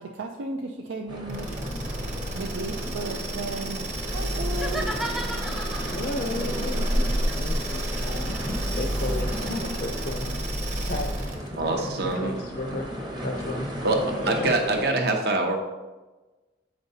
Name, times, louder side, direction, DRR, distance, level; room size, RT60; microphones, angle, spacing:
voice 1, 0.0-1.6 2.3-4.9, right 2 dB, 80° right, 2 dB, 0.4 m, -35 dB
sound 1, 1.1-14.8, equal, 20° right, 0.8 m, -34 dB
sound 2, 1.3-11.5, right 1 dB, 40° right, 1.2 m, -31 dB
sound 3, 4.5-6.2 7.1-10.2, equal, ahead, 0.3 m, -36 dB
voice 2, 5.8-11.1 11.5-12.9 13.2-13.7 14.2-14.5, left 2 dB, 50° left, 2 dB, 0.5 m, -34 dB
voice 3, 11.6-12.4 13.8-15.6, right 2 dB, 55° right, 3 dB, 0.8 m, -24 dB
8.0 x 5.2 x 2.7 m, 1.2 s
head